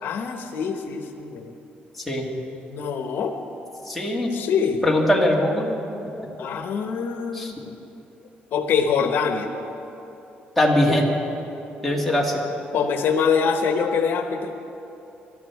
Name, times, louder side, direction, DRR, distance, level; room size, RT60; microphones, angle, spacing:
voice 1, 0.0-1.5 2.7-3.4 4.3-4.8 6.4-7.7 8.5-9.5 12.7-14.5, left 6 dB, 70° left, 6 dB, 0.9 m, -24 dB
voice 2, 3.9-4.3 4.8-5.7 7.3-7.5 10.6-11.1 11.8-12.4, left 1 dB, 5° left, -3 dB, 1.9 m, -21 dB
19.5 x 12.5 x 4.7 m, 3.0 s
cardioid pair, 145°, 4 cm